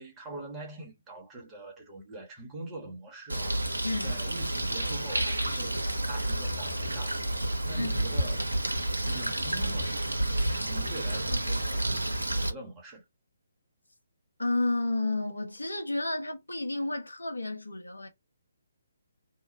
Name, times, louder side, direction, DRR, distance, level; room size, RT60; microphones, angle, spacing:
voice 1, 0.0-3.7 4.0-7.3 7.6-8.4 9.1-13.0, right 2 dB, 20° right, 1.2 m, -44 dB
Bird, 3.3-12.5, right 1 dB, 85° right, 0.9 m, -30 dB
voice 2, 3.8-4.2 7.7-7.9 14.4-18.1, left 2 dB, 85° left, 1.0 m, -31 dB
3.0 x 2.1 x 3.9 m
figure-of-eight pair, 140°, 0 cm